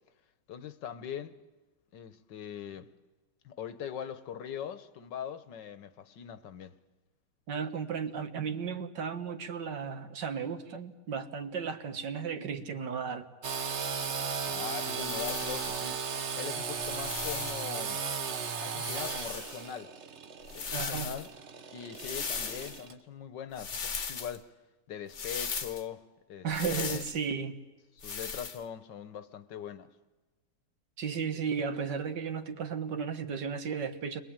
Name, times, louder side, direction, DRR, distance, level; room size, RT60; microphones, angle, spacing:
voice 1, 0.5-1.4 1.9-2.9 3.4-6.7 14.5-16.0 16.4-18.0 18.5-19.9 20.5-21.3 21.7-24.5 24.9-27.0 28.0-29.9, left 8 dB, 80° left, 1.7 m, -41 dB
voice 2, 7.5-13.3 20.7-21.1 26.4-27.6 31.0-34.2, right 6 dB, 75° right, 2.1 m, -34 dB
Engine / Sawing, 13.4-22.9, right 6 dB, 45° right, 1.2 m, -36 dB
sound 1, 15.0-15.9 16.8-17.8 18.7-19.7 20.4-21.3 21.9-22.8 23.6-24.4 25.1-25.8 26.5-27.2 28.0-28.6, left 6 dB, 45° left, 1.4 m, -38 dB
30.0 x 22.5 x 8.9 m
omnidirectional pair, 1.9 m